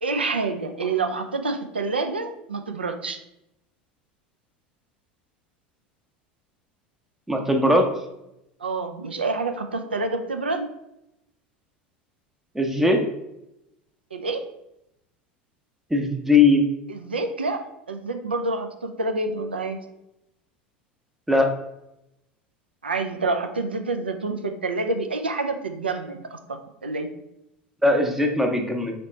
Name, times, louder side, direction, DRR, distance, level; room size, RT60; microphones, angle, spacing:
voice 1, 0.0-3.2 8.6-10.7 14.1-14.4 16.9-19.8 22.8-27.1, right 3 dB, 80° right, 6 dB, 0.4 m, -28 dB
voice 2, 7.3-7.8 12.5-13.0 15.9-16.6 21.3-21.5 27.8-28.9, left 2 dB, 5° right, 3 dB, 0.7 m, -19 dB
4.1 x 2.9 x 3.1 m, 0.85 s
figure-of-eight pair, 75°, 5 cm